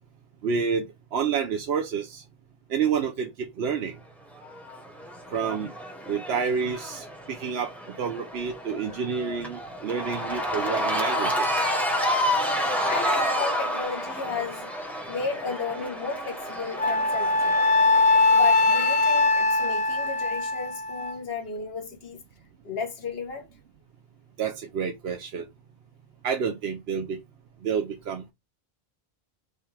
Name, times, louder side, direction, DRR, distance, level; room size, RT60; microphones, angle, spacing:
voice 1, 0.4-0.9 1.1-2.2 2.7-4.0 5.3-5.7 6.1-7.7 8.0-11.7 24.4-25.5 26.2-27.2 27.6-28.3, right 6 dB, 80° right, 0.9 m, -29 dB
Cheering / Crowd, 4.4-19.6, equal, ahead, 0.8 m, -30 dB
voice 2, 12.8-14.7 15.1-17.8 18.3-22.2 22.6-23.5, left 5 dB, 70° left, 1.3 m, -33 dB
Wind instrument woodwind instrument, 16.8-21.2, left 3 dB, 50° left, 0.4 m, -21 dB
5.3 x 2.3 x 3.2 m
omnidirectional pair, 1.0 m